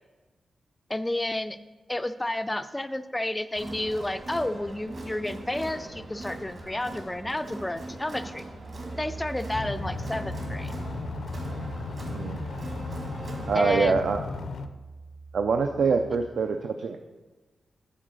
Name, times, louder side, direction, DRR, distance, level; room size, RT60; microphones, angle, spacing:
voice 1, 0.9-1.6 1.9-8.4 9.0-10.7 13.5-14.0, left 1 dB, 10° left, 11 dB, 0.3 m, -31 dB
Crowd, 3.6-13.8, right 2 dB, 45° right, 1.6 m, -41 dB
Piano, 8.6-16.3, right 3 dB, 90° right, 2.0 m, -42 dB
sound 1, 9.5-14.7, left 4 dB, 70° left, 0.5 m, -36 dB
voice 2, 12.1-12.4 13.5-14.2 15.3-17.0, right 5 dB, 70° right, 5 dB, 0.5 m, -25 dB
8.8 x 4.5 x 6.3 m, 1.2 s
wide cardioid pair, 150°, 0 cm